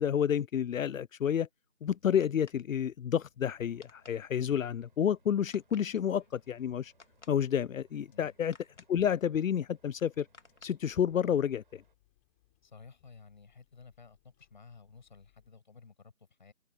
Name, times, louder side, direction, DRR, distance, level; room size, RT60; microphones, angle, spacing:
voice 1, 0.0-1.5 1.8-6.9 7.3-8.6 8.9-10.3 10.6-11.8, left 9 dB, 80° left, 0.5 m, -30 dB
sound 1, 1.8-11.5, left 4 dB, 60° left, 2.5 m, -62 dB
sound 2, 3.6-12.0, right 4 dB, 40° right, 7.5 m, -72 dB
sound 3, 6.6-15.5, left 21 dB, 10° left, 5.7 m, -73 dB
voice 2, 12.6-16.5, left 5 dB, 35° left, 7.7 m, -54 dB
figure-of-eight pair, 170°, 39 cm